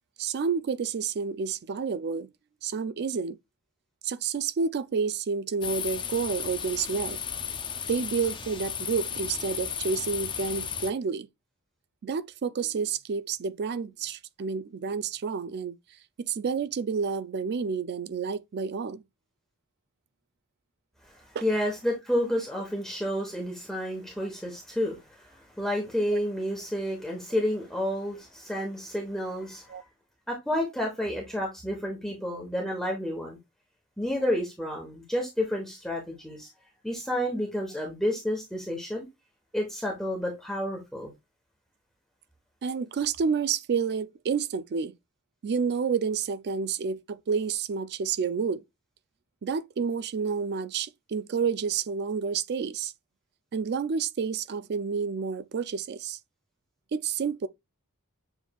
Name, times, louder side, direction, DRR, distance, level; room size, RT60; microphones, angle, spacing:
voice 1, 0.2-2.3 2.6-3.4 4.0-7.2 7.9-11.3 12.0-15.8 16.2-19.0 21.3-21.4 26.1-26.2 29.7-29.8 42.6-44.9 45.4-48.6 49.4-52.9 53.5-56.2 56.9-57.5, right 5 dB, 50° right, 0.4 m, -29 dB
sound 1, 5.6-10.9, left 8 dB, 20° left, 0.4 m, -34 dB
voice 2, 21.0-29.7 30.3-33.4 34.0-36.5 36.8-39.1 39.5-41.1, equal, ahead, 1.1 m, -30 dB
7.1 x 3.1 x 2.3 m
head